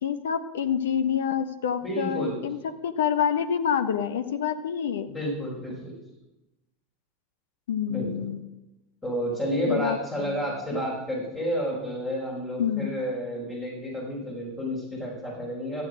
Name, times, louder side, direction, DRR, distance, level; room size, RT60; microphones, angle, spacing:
voice 1, 0.0-2.6 2.8-5.1 7.7-8.4 9.6-10.5 12.6-12.9, left 8 dB, 70° left, 10 dB, 0.9 m, -27 dB
voice 2, 1.8-2.4 5.1-5.9 7.9-8.1 9.0-15.8, equal, 20° left, -4 dB, 4.8 m, -30 dB
13.5 x 8.5 x 6.3 m, 0.96 s
figure-of-eight pair, 80°, 0 cm